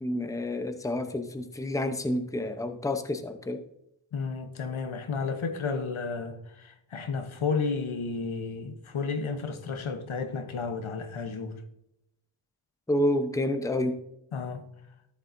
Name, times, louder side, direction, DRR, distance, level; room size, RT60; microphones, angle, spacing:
voice 1, 0.0-3.6 12.9-14.0, left 1 dB, 5° left, 0.8 m, -29 dB
voice 2, 4.1-11.6 14.3-14.7, left 4 dB, 75° left, 1.1 m, -32 dB
13.5 x 7.2 x 2.7 m
wide cardioid pair, 85°, 49 cm